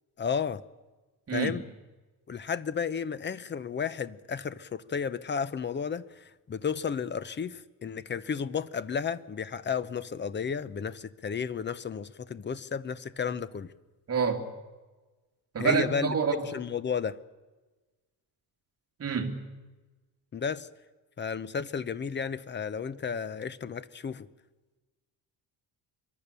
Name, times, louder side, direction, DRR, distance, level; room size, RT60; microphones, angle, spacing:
voice 1, 0.2-0.6 1.3-1.6 2.3-13.7 15.6-16.1 16.4-17.2 20.3-20.7 21.2-24.3, left 6 dB, 25° left, 0.7 m, -33 dB
voice 2, 14.1-14.5 15.5-16.4 19.0-19.4, right 6 dB, 35° right, 2.6 m, -27 dB
25.5 x 23.0 x 6.9 m
cardioid pair, 160°, 41 cm